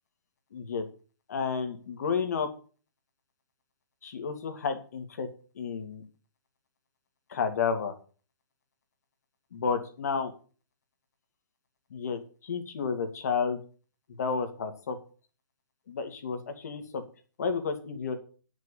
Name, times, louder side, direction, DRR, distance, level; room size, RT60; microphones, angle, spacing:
voice 1, 0.5-0.8 1.3-2.5 4.0-5.3 5.6-6.0 7.3-7.9 9.5-10.3 11.9-13.6 14.2-15.0 15.9-17.0 17.4-18.2, left 5 dB, 55° left, 7 dB, 2.1 m, -31 dB
9.6 x 6.2 x 7.2 m, 0.38 s
figure-of-eight pair, 125°, 10 cm